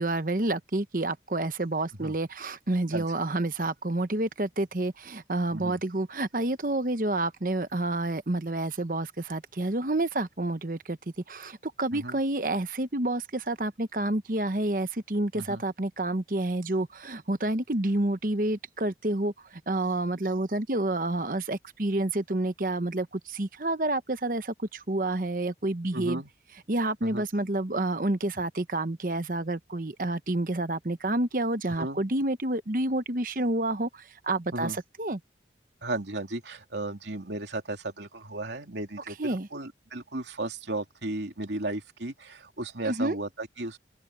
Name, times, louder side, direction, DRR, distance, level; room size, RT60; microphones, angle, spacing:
voice 1, 0.0-11.0 11.3-26.2 26.7-35.2 39.2-39.5 42.8-43.2, right 2 dB, 50° right, 1.1 m, -29 dB
voice 2, 25.9-26.3 27.0-27.2 31.8-32.0 34.5-34.8 35.8-43.8, right 2 dB, 85° right, 3.0 m, -35 dB
open air
head